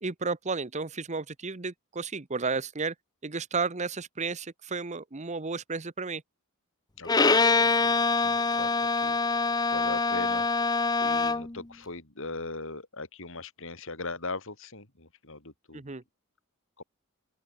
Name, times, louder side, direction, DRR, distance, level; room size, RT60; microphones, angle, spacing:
voice 1, 0.0-2.9 3.2-6.2 15.7-16.0, right 4 dB, 30° right, 1.0 m, -33 dB
voice 2, 7.0-7.4 7.6-8.7 9.0-9.2 9.7-15.8 16.8-16.9, left 3 dB, 60° left, 4.2 m, -40 dB
Bowed string instrument, 7.1-11.6, left 3 dB, 20° left, 0.7 m, -24 dB
open air
head